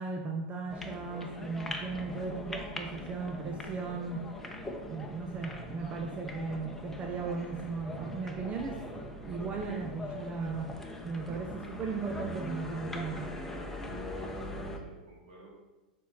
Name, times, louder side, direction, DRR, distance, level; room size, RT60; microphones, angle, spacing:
voice 1, 0.0-4.3 4.8-10.7 11.0-13.4, right 4 dB, 30° right, 3 dB, 0.8 m, -37 dB
sound 1, 0.7-14.8, left 1 dB, 5° left, 1.0 m, -41 dB
voice 2, 5.5-5.9 14.1-15.5, right 1 dB, 65° right, -2 dB, 2.8 m, -56 dB
7.2 x 4.6 x 5.8 m, 1.1 s
hypercardioid pair, 105°, 5 cm